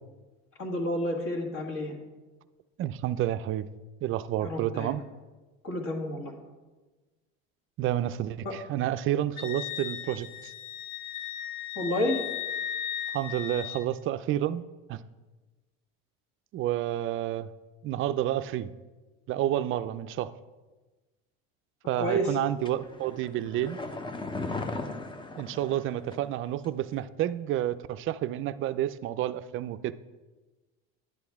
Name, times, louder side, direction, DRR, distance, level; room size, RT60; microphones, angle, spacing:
voice 1, 0.6-2.0 4.4-5.0 5.6-6.3 8.4-8.5 11.8-12.2 22.0-22.4, equal, 45° left, 2 dB, 1.8 m, -30 dB
voice 2, 2.8-3.7 4.0-5.0 7.8-10.3 13.1-14.6 14.9-15.0 16.5-17.5 17.8-18.7 19.3-20.3 21.9-23.8 25.4-29.9, right 12 dB, 45° right, 13 dB, 0.4 m, -30 dB
Wind instrument woodwind instrument, 9.4-13.8, left 9 dB, 70° left, 1.1 m, -36 dB
sound 1, 22.6-26.4 26.6-26.7, left 3 dB, 15° left, 0.6 m, -37 dB
10.5 x 7.8 x 3.5 m, 1.2 s
supercardioid pair, 115°, 30 cm